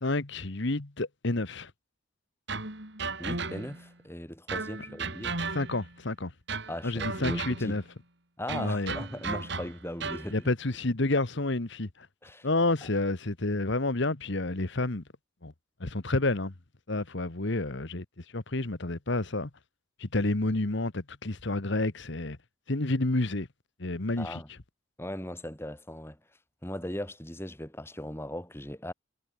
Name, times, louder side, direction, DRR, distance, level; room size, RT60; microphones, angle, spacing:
voice 1, 0.0-1.7 5.5-6.3 6.8-7.8 8.6-9.0 10.3-12.1 12.4-15.0 15.4-15.5 15.8-16.5 16.9-19.5 20.0-22.4 22.7-23.5 23.8-24.4, left 2 dB, 55° left, 1.4 m, -29 dB
sound 1, 2.5-3.9 4.5-5.9 6.5-7.8 8.5-10.3, right 4 dB, 55° right, 4.6 m, -35 dB
voice 2, 3.2-5.4 6.7-7.8 8.4-10.5 12.2-12.5 24.2-24.5 25.0-26.2 26.6-28.9, left 1 dB, 10° left, 3.9 m, -38 dB
head